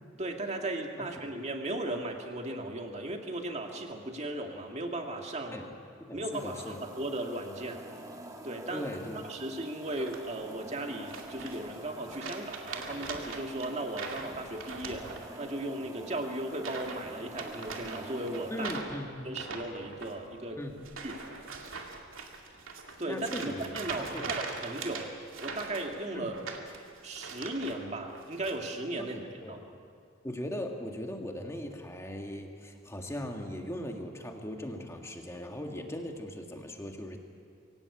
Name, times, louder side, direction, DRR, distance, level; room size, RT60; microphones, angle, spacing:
voice 1, 0.2-5.6 6.1-7.8 8.4-8.9 9.2-18.7 19.2-20.6 21.0-21.2 23.0-25.1 25.4-26.3 27.0-29.2 29.5-29.6, right 1 dB, 35° right, 3 dB, 2.0 m, -36 dB
voice 2, 6.0-6.8 8.7-9.3 18.5-19.3 20.6-20.8 23.1-23.6 24.0-24.3 26.1-26.3 29.0-29.6 30.2-37.2, left 1 dB, 15° left, 3 dB, 1.8 m, -39 dB
sound 1, 6.3-18.8, right 1 dB, 15° right, 1.5 m, -47 dB
sound 2, 9.9-10.5 11.1-11.8 12.1-15.6 15.8-16.1 16.5-17.0 17.3-27.8 28.1-28.5, right 4 dB, 90° right, 2.3 m, -41 dB
23.5 x 17.0 x 8.4 m, 2.4 s
head